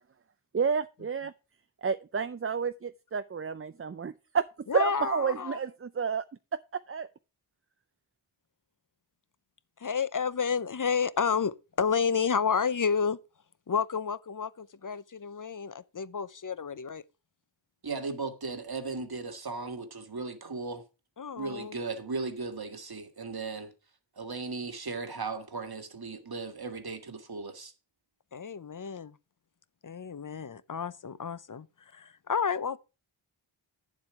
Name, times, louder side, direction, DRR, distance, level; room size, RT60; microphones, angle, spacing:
voice 1, 0.5-1.3 1.8-6.2 6.5-7.1, right 6 dB, 30° right, 0.4 m, -30 dB
voice 2, 4.7-5.6 9.8-13.2 13.7-17.0 21.2-21.8 28.3-29.2 29.8-31.7 31.9-32.8, left 6 dB, 40° left, 0.6 m, -30 dB
voice 3, 17.8-20.8 21.3-23.7 24.2-27.7, right 4 dB, 50° right, 1.6 m, -37 dB
9.5 x 7.4 x 4.8 m
wide cardioid pair, 50°, 49 cm